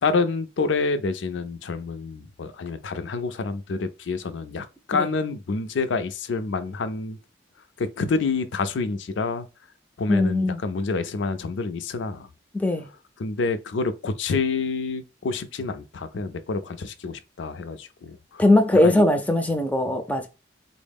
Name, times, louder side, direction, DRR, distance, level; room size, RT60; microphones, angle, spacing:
voice 1, 0.0-7.2 7.8-9.5 10.0-12.3 13.2-18.4 18.8-19.0, left 4 dB, 75° left, 0.4 m, -28 dB
voice 2, 10.1-10.6 12.5-12.9 18.4-20.3, left 1 dB, 10° left, 0.4 m, -20 dB
4.0 x 2.0 x 3.5 m
head